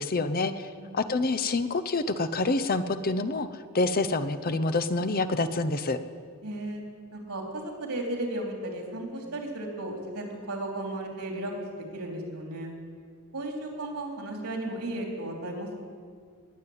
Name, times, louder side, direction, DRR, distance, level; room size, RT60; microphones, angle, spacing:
voice 1, 0.0-0.7 0.9-3.5 3.7-6.0, left 3 dB, 40° left, 12 dB, 0.7 m, -27 dB
voice 2, 6.4-6.8 7.1-11.5 11.9-12.7 13.3-15.8, right 1 dB, 80° right, 0 dB, 3.4 m, -35 dB
19.5 x 7.4 x 9.3 m, 2.1 s
head